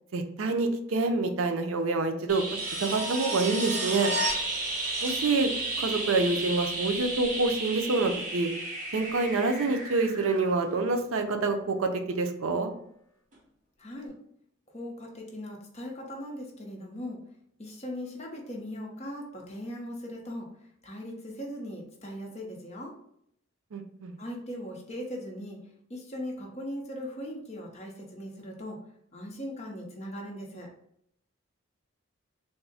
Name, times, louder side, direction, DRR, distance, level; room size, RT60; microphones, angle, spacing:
voice 1, 0.1-2.4 2.8-4.1 5.0-5.5 5.8-8.5 8.9-12.7 23.7-24.2, right 3 dB, 85° right, 6 dB, 0.5 m, -27 dB
sound 1, 2.3-11.0 13.3-13.4, right 2 dB, 40° right, 0.8 m, -33 dB
voice 2, 13.8-14.1 14.7-17.2 17.6-20.5 20.8-22.9 24.2-25.6 25.9-28.8 29.1-30.7, equal, 30° left, -1 dB, 0.7 m, -39 dB
3.5 x 2.0 x 4.0 m, 0.72 s
head